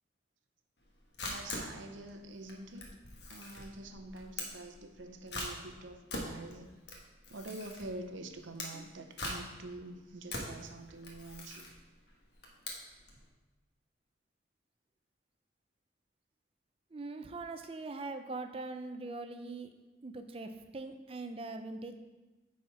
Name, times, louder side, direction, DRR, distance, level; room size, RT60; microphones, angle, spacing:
Camera, 0.8-13.2, left 2 dB, 60° left, 1.3 m, -43 dB
voice 1, 1.2-3.0 3.3-6.7 7.3-11.7, right 2 dB, 85° right, 6 dB, 0.7 m, -46 dB
voice 2, 16.9-19.7 20.0-21.9, right 3 dB, 30° right, 8 dB, 0.4 m, -42 dB
8.1 x 4.2 x 4.8 m, 1.2 s
head